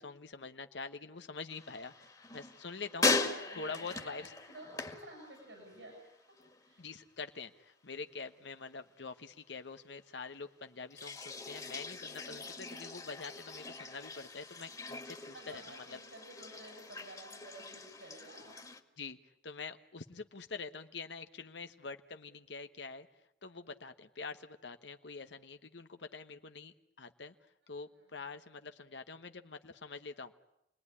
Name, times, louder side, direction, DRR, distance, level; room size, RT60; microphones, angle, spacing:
voice 1, 0.0-3.1 3.6-4.3 6.8-16.0 19.0-19.2 19.4-23.1 23.4-27.3 27.7-30.3, left 4 dB, 85° left, 8 dB, 1.2 m, -45 dB
sound 1, 1.5-5.9 6.2-6.8 10.9-18.8, left 3 dB, 20° left, 2.0 m, -39 dB
voice 2, 2.9-6.9 15.3-18.6 28.0-28.1, right 1 dB, 85° right, 1 dB, 7.7 m, -53 dB
29.5 x 20.0 x 9.8 m, 0.85 s
head